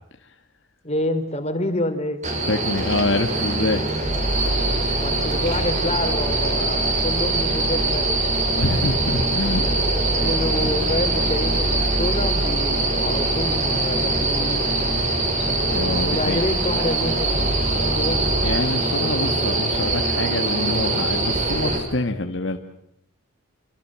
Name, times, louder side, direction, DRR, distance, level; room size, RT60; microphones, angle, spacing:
voice 1, 0.8-2.2 5.0-8.2 9.1-14.6 16.0-17.5 17.8-18.2, left 1 dB, 30° left, 7 dB, 3.5 m, -28 dB
sound 1, 2.2-21.8, right 2 dB, 35° right, 6.2 m, -23 dB
voice 2, 2.5-3.8 8.5-9.6 10.6-10.7 15.7-16.4 18.4-22.6, left 2 dB, 60° left, 5 dB, 1.7 m, -25 dB
sound 2, 4.0-18.6, equal, ahead, 1.9 m, -29 dB
27.5 x 25.5 x 7.6 m, 0.75 s
head